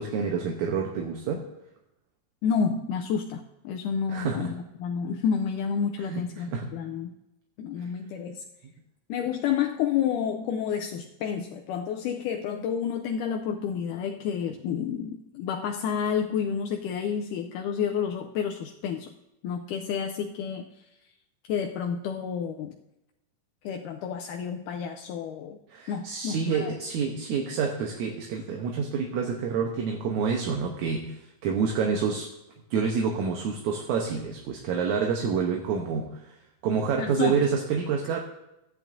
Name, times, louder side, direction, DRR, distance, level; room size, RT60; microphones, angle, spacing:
voice 1, 0.0-1.5 4.1-4.5 6.1-6.8 7.8-7.9 25.7-32.3 32.7-36.4 36.6-38.2, right 6 dB, 70° right, 2 dB, 2.0 m, -28 dB
voice 2, 2.4-7.1 7.6-8.4 9.1-19.1 19.4-20.7 21.5-22.8 23.6-25.6 25.9-26.7 37.0-37.5, left 7 dB, 80° left, 3 dB, 2.0 m, -30 dB
14.5 x 10.5 x 2.6 m, 0.90 s
omnidirectional pair, 3.9 m